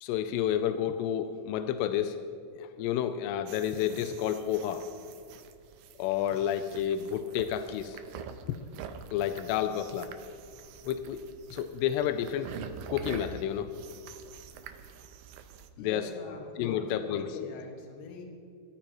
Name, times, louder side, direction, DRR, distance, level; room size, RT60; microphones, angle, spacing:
voice 1, 0.0-2.2 2.6-4.9 6.0-8.0 8.5-8.6 9.1-10.1 10.8-11.2 11.5-12.6 12.9-13.8 15.8-16.0 16.6-17.5, left 10 dB, 90° left, 9 dB, 2.7 m, -30 dB
sound 1, 3.5-15.7, right 7 dB, 85° right, 2.0 m, -46 dB
voice 2, 15.8-18.2, left 3 dB, 70° left, 0 dB, 3.6 m, -44 dB
20.5 x 13.0 x 3.0 m, 2.5 s
omnidirectional pair, 4.8 m